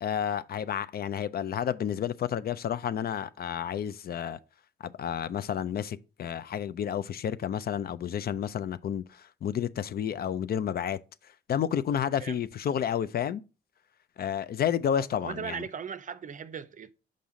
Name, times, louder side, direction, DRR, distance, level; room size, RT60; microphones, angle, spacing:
voice 1, 0.0-4.4 4.8-11.0 11.5-13.4 14.2-15.6, left 9 dB, 50° left, 0.4 m, -31 dB
voice 2, 15.2-16.9, right 7 dB, 40° right, 0.6 m, -38 dB
5.5 x 5.2 x 3.7 m
supercardioid pair, 75°, 21 cm